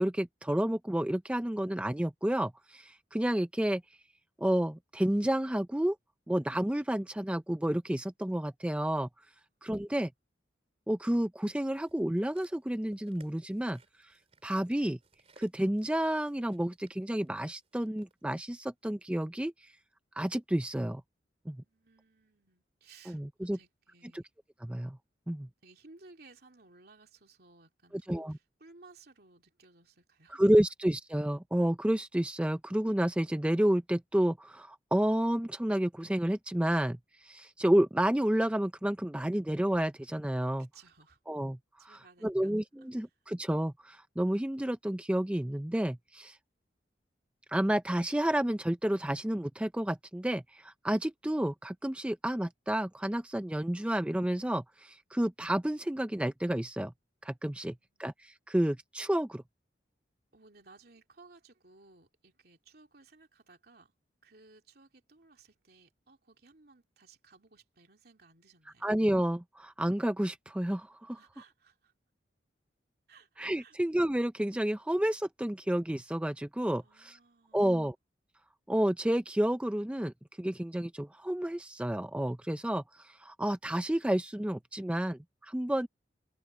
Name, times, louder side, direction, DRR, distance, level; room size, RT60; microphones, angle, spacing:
voice 1, 0.0-3.8 4.4-6.0 6.3-9.1 9.6-10.1 10.9-14.1 14.4-15.0 15.4-19.7 20.2-21.0 21.5-21.6 23.1-23.6 24.6-25.0 25.3-25.5 28.1-28.3 30.3-40.7 41.3-46.4 47.5-56.9 57.2-59.4 68.8-71.2 73.4-77.2 77.5-77.9 78.7-85.9, right 1 dB, 5° right, 0.4 m, -30 dB
sound 1, 11.8-18.1 18.9-19.0, right 2 dB, 35° right, 4.0 m, -64 dB
voice 2, 21.5-24.3 25.2-30.4 40.7-41.2 41.8-42.5 57.6-58.1 60.3-63.9 64.2-68.9 71.1-71.9 73.1-73.3 73.6-73.8 76.8-77.9, right 3 dB, 55° right, 3.1 m, -59 dB
head